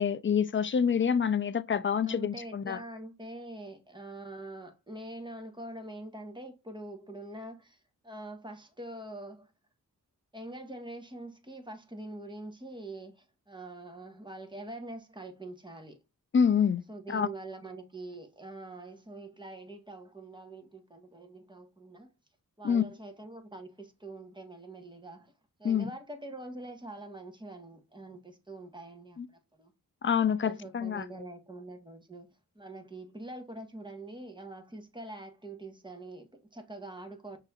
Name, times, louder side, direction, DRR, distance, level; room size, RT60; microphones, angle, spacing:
voice 1, 0.0-2.8 16.3-16.8 17.1-17.3 22.6-22.8 25.6-25.9 29.2-29.3 30.0-31.0, left 7 dB, 35° left, 0.5 m, -27 dB
voice 2, 2.0-7.8 8.0-9.5 10.3-16.0 16.9-22.1 22.6-25.3 25.6-29.7 30.4-32.3 32.5-37.4, right 2 dB, 15° right, 1.5 m, -44 dB
5.9 x 3.0 x 2.4 m
cardioid pair, 60°, 36 cm